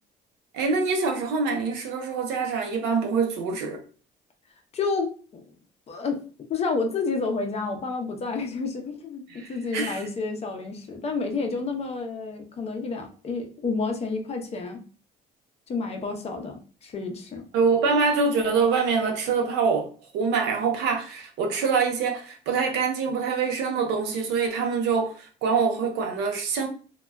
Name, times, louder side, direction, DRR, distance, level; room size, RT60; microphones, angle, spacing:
voice 1, 0.5-3.8 9.3-10.1 17.5-19.9 20.1-26.7, right 5 dB, 90° right, 0.6 m, -25 dB
voice 2, 4.7-5.4 5.9-6.2 6.5-9.2 9.5-14.8 15.7-17.4, left 4 dB, 40° left, 0.5 m, -30 dB
2.2 x 2.0 x 3.4 m
cardioid pair, 110°, 17 cm